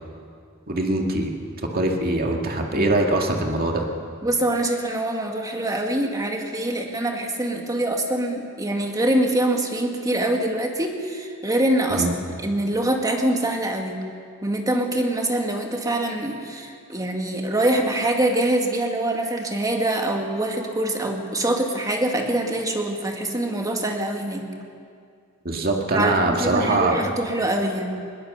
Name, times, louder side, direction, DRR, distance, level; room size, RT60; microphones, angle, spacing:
voice 1, 0.7-1.4 1.7-3.9 11.9-12.1 25.4-27.0, right 2 dB, 45° right, 1 dB, 2.2 m, -22 dB
voice 2, 4.2-14.0 14.4-24.5 25.9-28.0, right 1 dB, 15° right, 2 dB, 2.0 m, -24 dB
21.5 x 18.5 x 6.8 m, 2.2 s
head